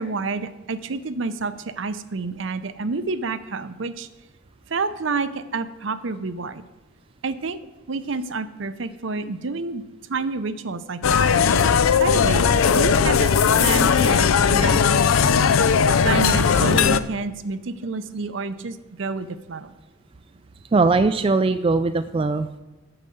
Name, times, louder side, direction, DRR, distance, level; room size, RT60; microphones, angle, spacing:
voice 1, 0.0-4.1 4.7-6.6 7.2-7.6 7.9-9.8 10.1-11.3 12.0-13.3 13.6-14.8 16.0-19.7, right 4 dB, 65° right, 12 dB, 0.6 m, -28 dB
sound 1, 11.0-17.0, left 6 dB, 90° left, 0.5 m, -18 dB
voice 2, 20.7-22.6, right 3 dB, 25° right, 10 dB, 0.3 m, -20 dB
8.7 x 6.6 x 7.7 m, 1.1 s
head